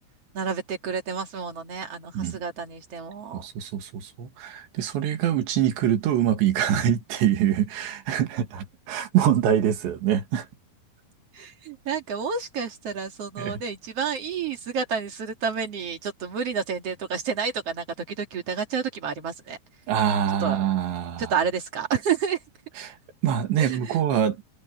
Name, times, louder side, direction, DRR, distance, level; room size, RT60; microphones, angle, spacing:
voice 1, 0.3-3.4 11.3-19.6 20.4-20.6 21.2-22.4 23.6-24.0, right 6 dB, 45° right, 2.5 m, -30 dB
voice 2, 3.3-10.5 13.4-13.6 19.9-21.3 22.8-23.0 23.2-24.4, right 10 dB, 75° right, 4.4 m, -24 dB
omnidirectional pair, 5.2 m